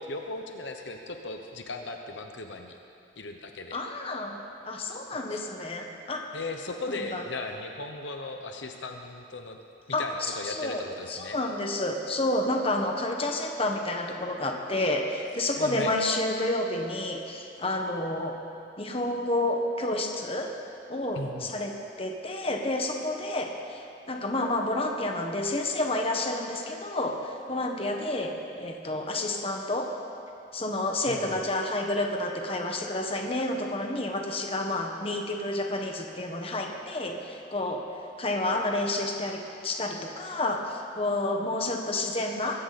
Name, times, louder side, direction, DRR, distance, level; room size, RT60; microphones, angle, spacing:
voice 1, 0.0-2.8 3.2-3.8 5.3-5.4 6.3-9.6 10.0-11.4 15.6-15.9 21.1-21.5 31.1-31.4, left 2 dB, 70° left, 4 dB, 1.0 m, -37 dB
voice 2, 3.7-4.4 4.6-6.3 7.1-7.2 9.9-10.8 11.1-18.3 18.8-20.5 20.9-23.8 24.1-29.9 30.5-37.8 38.2-42.6, left 1 dB, 30° left, 2 dB, 1.4 m, -30 dB
23.5 x 14.5 x 4.3 m, 2.6 s
head